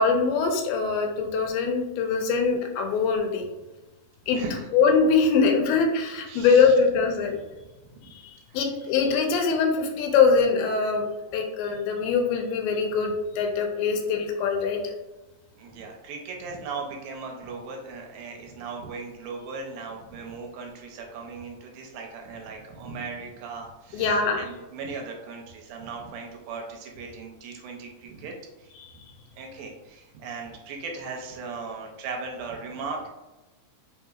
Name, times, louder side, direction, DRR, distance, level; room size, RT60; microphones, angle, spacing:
voice 1, 0.0-3.4 4.3-4.4 4.7-7.4 8.1-14.8 23.9-24.4 28.8-28.9, left 5 dB, 85° left, 3 dB, 2.5 m, -23 dB
voice 2, 4.3-4.6 6.3-6.7 7.9-8.1 8.5-8.6 15.6-28.3 28.6-28.7 29.4-33.1, right 4 dB, 80° right, 1 dB, 2.3 m, -38 dB
5.4 x 2.8 x 2.3 m, 1.1 s
omnidirectional pair, 4.2 m